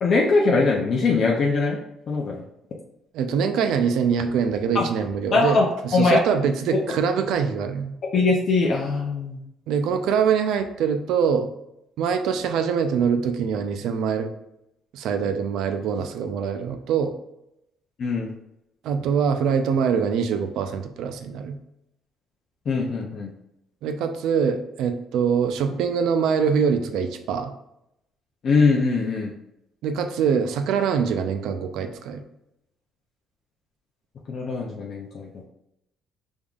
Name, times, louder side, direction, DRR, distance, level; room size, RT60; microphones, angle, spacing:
voice 1, 0.0-1.8 2.1-2.4 4.7-4.8 5.3-6.2 8.1-9.4 18.0-18.3 22.7-23.3 28.4-29.3 34.3-35.5, left 3 dB, 45° left, -2 dB, 0.6 m, -21 dB
voice 2, 3.1-5.6 5.8-7.9 9.7-11.5 12.0-14.3 14.9-17.1 18.8-21.6 23.8-27.5 29.8-32.2, right 6 dB, 75° right, 8 dB, 0.5 m, -24 dB
5.3 x 3.5 x 2.4 m, 0.82 s
cardioid pair, 140°, 0 cm